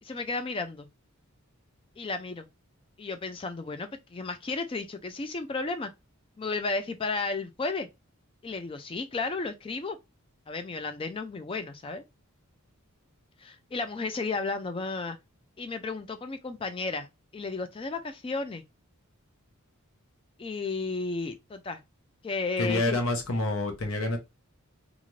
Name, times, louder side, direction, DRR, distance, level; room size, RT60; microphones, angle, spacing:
voice 1, 0.0-0.9 2.0-2.5 3.0-5.9 6.4-7.9 8.4-10.0 10.5-12.0 13.4-15.2 15.6-17.1 17.3-18.6 20.4-21.8 22.2-23.0, left 3 dB, 25° left, 0.3 m, -33 dB
voice 2, 22.6-24.2, left 2 dB, 65° left, 0.8 m, -27 dB
2.5 x 2.4 x 3.0 m
head